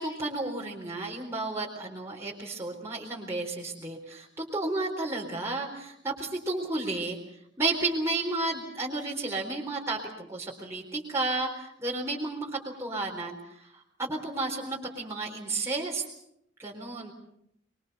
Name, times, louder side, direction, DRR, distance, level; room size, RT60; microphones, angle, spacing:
voice 1, 0.0-7.2 7.6-12.5 12.8-16.0 16.6-17.1, right 2 dB, 15° right, -3 dB, 4.1 m, -32 dB
25.0 x 23.0 x 6.9 m, 0.75 s
head